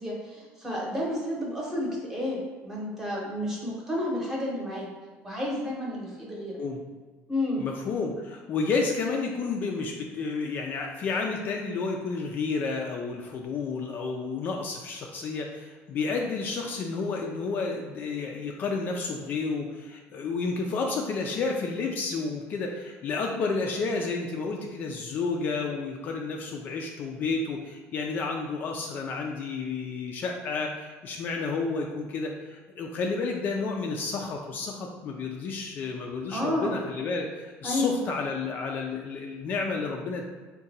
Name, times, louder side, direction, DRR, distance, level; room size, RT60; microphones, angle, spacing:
voice 1, 0.0-4.9 5.2-6.6 7.3-7.6 36.3-36.7 37.6-38.0, left 1 dB, 10° right, -4 dB, 0.8 m, -31 dB
voice 2, 7.6-40.2, left 4 dB, 40° left, 1 dB, 0.3 m, -31 dB
3.6 x 2.2 x 4.0 m, 1.4 s
cardioid pair, 155°, 5 cm